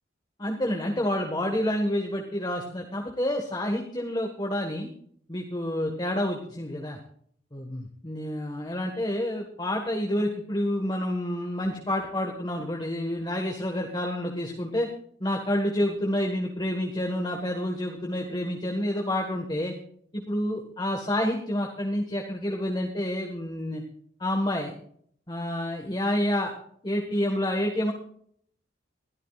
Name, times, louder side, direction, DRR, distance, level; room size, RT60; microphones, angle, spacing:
voice 1, 0.4-4.9 5.3-7.0 7.5-14.9 15.2-19.7 20.1-23.8 24.2-24.7 25.3-26.5 26.8-27.9, left 1 dB, 20° left, 2 dB, 1.5 m, -28 dB
22.0 x 13.5 x 2.4 m, 0.63 s
head